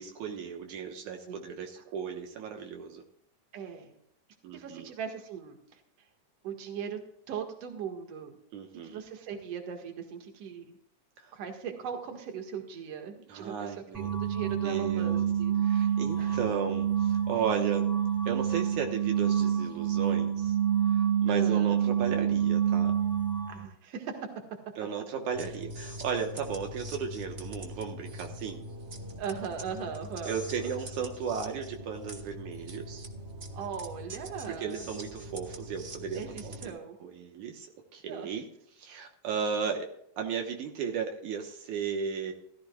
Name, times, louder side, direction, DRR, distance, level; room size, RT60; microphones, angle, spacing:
voice 1, 0.0-3.0 4.4-4.9 8.5-9.0 11.2-11.3 13.3-14.1 14.6-15.2 15.6-17.9 18.3-20.6 20.9-22.9 24.8-28.6 30.3-33.1 34.6-38.4 38.7-39.9 40.2-42.3, right 6 dB, 80° right, 3 dB, 2.6 m, -35 dB
voice 2, 3.5-3.9 4.5-5.8 6.4-7.0 7.3-8.4 8.8-10.8 11.3-13.8 14.2-16.4 21.3-21.8 23.5-24.3 29.2-30.8 33.5-34.8 36.1-37.0 38.1-38.3, right 7 dB, 55° right, 3 dB, 2.7 m, -39 dB
sound 1, 13.9-23.7, right 9 dB, 5° right, 1.9 m, -27 dB
sound 2, 25.3-36.7, equal, 40° right, 1.0 m, -42 dB
15.5 x 14.5 x 2.3 m, 0.72 s
omnidirectional pair, 3.5 m